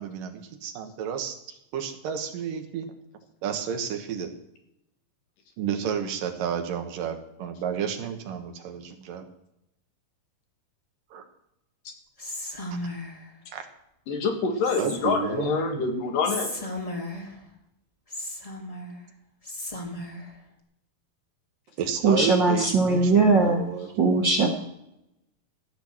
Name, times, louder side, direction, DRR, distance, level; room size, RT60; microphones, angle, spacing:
voice 1, 0.0-1.4 1.7-2.9 3.4-4.3 5.6-9.2 11.1-11.2 13.5-13.7 14.8-15.8 21.8-23.9, right 7 dB, 85° right, 3.0 m, -31 dB
Whispering, 12.2-13.3 14.6-15.3 16.2-17.4 18.1-19.0 19.4-20.3, left 1 dB, 40° left, 0.5 m, -35 dB
voice 2, 14.1-16.6, left 4 dB, 85° left, 3.5 m, -26 dB
voice 3, 22.0-23.6 24.0-24.5, right 3 dB, 55° right, 1.3 m, -20 dB
14.5 x 6.2 x 8.7 m
omnidirectional pair, 3.8 m